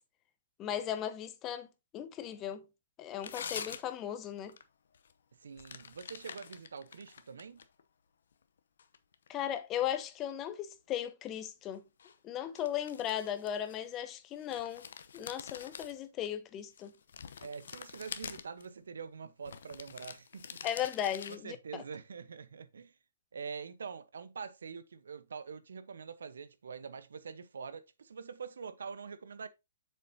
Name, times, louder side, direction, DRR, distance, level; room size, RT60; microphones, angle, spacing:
voice 1, 0.6-1.7 1.9-2.7 3.0-4.5 9.3-11.8 12.2-14.9 15.1-16.9 20.6-21.8, left 10 dB, 25° left, 1.0 m, -37 dB
sound 1, 3.2-4.1 4.4-4.6 4.9-5.1 5.6-7.8 8.3-9.3 12.0-12.2 12.5-14.1 14.4-16.3 16.8-18.6 19.4-21.4, left 7 dB, 65° left, 0.8 m, -46 dB
voice 2, 5.3-7.6 17.4-20.7 21.2-22.9 23.3-29.5, right 6 dB, 70° right, 0.9 m, -45 dB
7.6 x 6.8 x 2.8 m
figure-of-eight pair, 125°, 0 cm